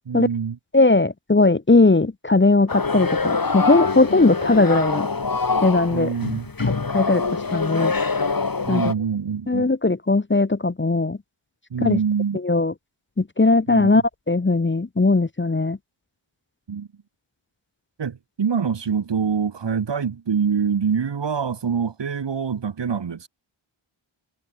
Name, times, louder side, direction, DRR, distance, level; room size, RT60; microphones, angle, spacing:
voice 1, 0.1-0.6 5.9-6.5 8.7-9.7 11.7-12.4 13.7-13.9 16.7-16.9 18.0-23.3, right 6 dB, 55° right, 1.1 m, -25 dB
voice 2, 0.7-5.1 5.6-6.1 6.9-7.9 8.7-8.8 9.5-11.2 11.8-12.0 12.4-12.7 13.2-15.8, left 3 dB, 25° left, 0.8 m, -19 dB
sound 1, 2.7-8.9, left 4 dB, 45° left, 1.8 m, -24 dB
wide cardioid pair, 50°, 50 cm